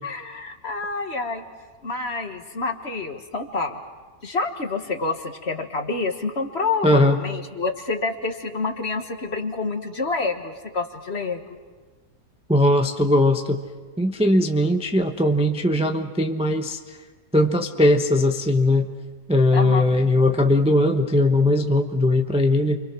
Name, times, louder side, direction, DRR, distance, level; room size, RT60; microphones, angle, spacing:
voice 1, 0.0-1.4 1.8-3.8 4.2-11.4 19.5-19.8, left 3 dB, 40° left, 5 dB, 1.7 m, -28 dB
voice 2, 6.8-7.2 12.5-13.6 14.0-17.0 17.3-18.9 19.3-22.8, left 1 dB, 5° right, 4 dB, 0.8 m, -19 dB
30.0 x 25.0 x 6.2 m, 1.4 s
omnidirectional pair, 1.7 m